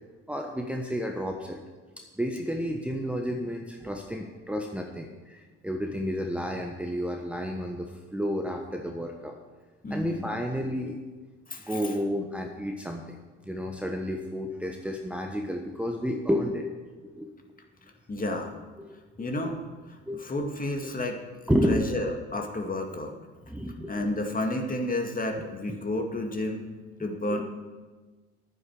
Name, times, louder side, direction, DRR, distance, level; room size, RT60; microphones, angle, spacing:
voice 1, 0.3-1.6 2.0-9.4 9.9-11.0 11.7-13.2 13.4-16.7 17.0-17.3 18.9-19.0 19.3-19.4 20.0-20.2 20.8-20.9 21.5-21.8 23.5-23.9 27.0-27.4, equal, 5° right, 2 dB, 1.2 m, -31 dB
voice 2, 9.8-10.4 11.5-11.9 18.1-18.6 19.2-23.2 23.9-26.7 27.0-27.4, left 1 dB, 25° left, 3 dB, 2.0 m, -31 dB
11.0 x 9.5 x 6.4 m, 1.3 s
hypercardioid pair, 60°, 34 cm